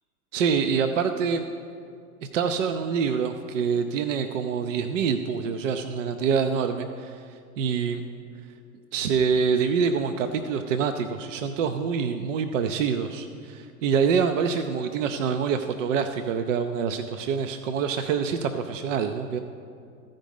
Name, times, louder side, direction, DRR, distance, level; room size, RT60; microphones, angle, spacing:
voice 1, 0.3-1.4 2.3-7.3 7.6-8.0 8.9-19.4, right 6 dB, 60° right, 7 dB, 0.6 m, -26 dB
13.5 x 5.2 x 5.3 m, 2.4 s
figure-of-eight pair, 90°, 43 cm